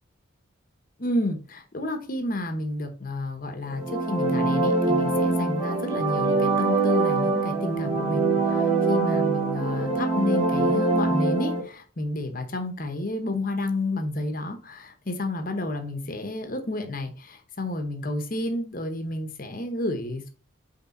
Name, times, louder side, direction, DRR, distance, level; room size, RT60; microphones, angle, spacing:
voice 1, 1.0-20.3, left 2 dB, 40° left, 0.9 m, -30 dB
sound 1, 3.7-11.6, right 3 dB, 25° right, 2.0 m, -24 dB
5.7 x 3.4 x 5.8 m
head